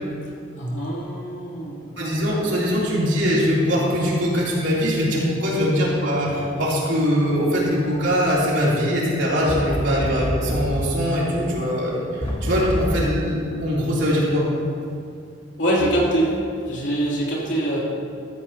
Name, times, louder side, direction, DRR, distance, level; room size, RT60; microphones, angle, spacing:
voice 1, 0.6-1.8 15.6-16.3 16.6-17.8, right 1 dB, 65° left, -5 dB, 3.2 m, -23 dB
voice 2, 2.0-14.5, equal, 65° right, -6 dB, 3.3 m, -22 dB
sound 1, 9.5-10.8 12.2-13.1, equal, 30° left, 1.3 m, -26 dB
14.0 x 13.5 x 2.9 m, 2.4 s
head